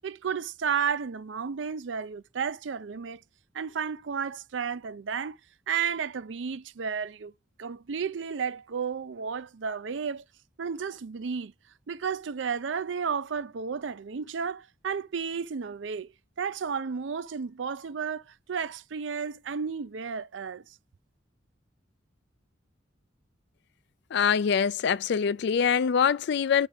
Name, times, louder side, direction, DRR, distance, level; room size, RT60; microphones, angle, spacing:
voice 1, 0.0-3.2 3.5-5.4 5.7-7.3 7.6-10.2 10.6-11.5 11.9-16.1 16.4-20.8, right 6 dB, 70° right, 0.5 m, -32 dB
voice 2, 24.1-26.7, left 7 dB, 60° left, 0.4 m, -24 dB
6.6 x 3.6 x 5.7 m
head